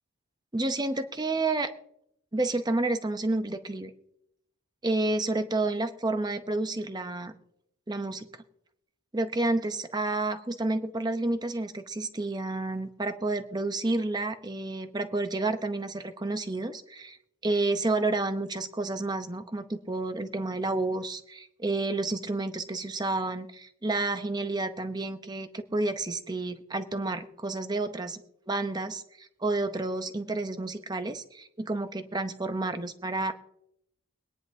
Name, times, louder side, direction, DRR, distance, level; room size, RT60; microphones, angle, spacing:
voice 1, 0.5-1.7 2.3-3.9 4.8-7.3 7.9-8.3 9.1-17.2 17.4-28.2 28.5-33.3, right 2 dB, 20° right, 8 dB, 0.7 m, -30 dB
23.0 x 10.0 x 2.7 m, 0.75 s
head